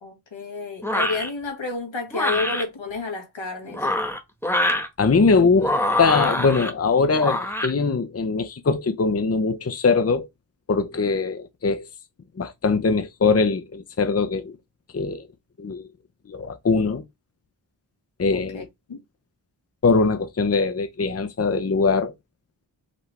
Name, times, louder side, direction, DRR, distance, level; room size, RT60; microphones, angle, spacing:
voice 1, 0.0-3.9 18.3-19.0, left 3 dB, 80° left, 1.7 m, -30 dB
sound 1, 0.8-1.3 2.1-2.6 3.7-4.9 5.6-6.7 7.2-7.7, left 1 dB, 5° left, 1.3 m, -24 dB
voice 2, 5.0-10.3 10.7-11.9 12.4-14.6 14.9-15.3 15.6-15.9 16.3-17.0 18.2-18.7 19.8-22.1, left 4 dB, 35° left, 0.7 m, -21 dB
5.0 x 3.3 x 3.3 m
cardioid pair, 40°, 45 cm